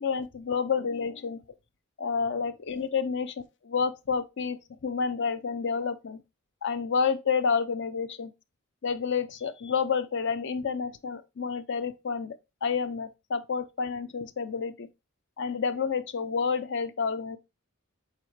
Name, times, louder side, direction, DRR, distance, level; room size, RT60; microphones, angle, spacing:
voice 1, 0.0-1.4 2.0-3.3 3.7-6.2 6.6-8.3 8.8-14.9 15.4-17.4, left 5 dB, 60° left, 0.6 m, -29 dB
7.3 x 4.3 x 3.2 m
head